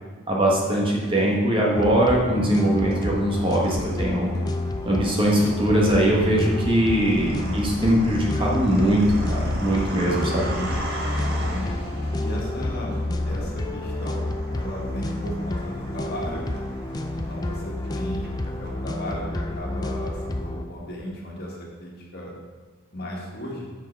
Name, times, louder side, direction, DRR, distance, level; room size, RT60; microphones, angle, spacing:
voice 1, 0.3-4.3 4.8-10.5, right 1 dB, 25° right, -3 dB, 1.4 m, -21 dB
sound 1, 1.0-1.7 2.4-20.2, right 1 dB, 50° right, 1.4 m, -38 dB
sound 2, 1.8-20.7, left 2 dB, 20° left, 0.4 m, -29 dB
voice 2, 7.3-7.6 10.4-10.9 11.4-11.8 12.2-13.0 13.3-14.2 14.5-16.4 17.1-22.3 22.9-23.7, equal, 50° left, -3 dB, 1.8 m, -35 dB
7.7 x 6.4 x 4.6 m, 1.4 s
head